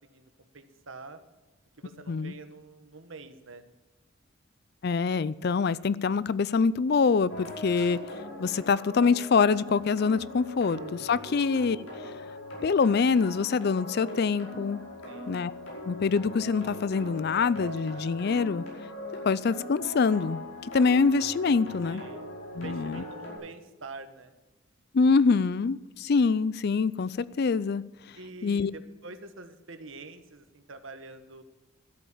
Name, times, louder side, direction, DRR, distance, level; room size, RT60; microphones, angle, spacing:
voice 1, 0.1-1.2 1.8-3.6 10.7-11.3 15.1-15.3 21.8-22.2 22.6-24.3 28.1-31.4, right 3 dB, 70° right, 9 dB, 1.3 m, -46 dB
voice 2, 4.8-8.0 8.4-11.8 12.0-12.1 12.6-14.8 15.3-15.5 15.9-18.6 19.3-20.4 20.7-22.0 22.5-23.0 24.9-27.8 28.4-28.7, left 5 dB, 50° left, 19 dB, 0.4 m, -25 dB
sound 1, 7.3-23.4, left 1 dB, 80° left, 5.2 m, -40 dB
13.0 x 8.5 x 7.2 m, 1.1 s
head